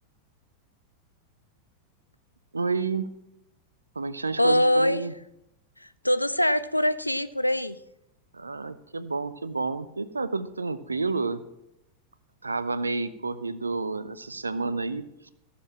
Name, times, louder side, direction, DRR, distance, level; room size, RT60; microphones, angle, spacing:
voice 1, 2.5-3.1 4.0-5.1 8.3-11.4 12.4-15.3, right 3 dB, 80° right, 14 dB, 0.7 m, -30 dB
voice 2, 4.4-5.0 5.8-7.8, left 1 dB, 85° left, 14 dB, 0.5 m, -23 dB
14.5 x 7.0 x 7.4 m, 0.83 s
figure-of-eight pair, 90°, 0 cm